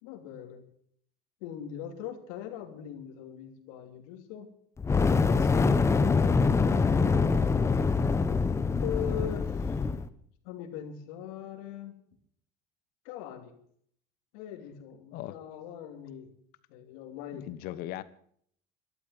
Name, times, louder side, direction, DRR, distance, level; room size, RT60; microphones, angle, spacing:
voice 1, 0.0-0.6 1.4-4.5 8.8-9.8 10.4-11.9 13.0-13.6 14.3-16.3 16.7-17.5, left 10 dB, 85° left, 5 dB, 3.1 m, -41 dB
Fire, 4.8-10.1, left 4 dB, 15° left, 0.9 m, -25 dB
voice 2, 6.1-6.6 15.1-15.3 17.3-18.0, left 14 dB, 60° left, 15 dB, 1.2 m, -40 dB
13.0 x 12.0 x 7.7 m, 0.63 s
cardioid pair, 140°, 17 cm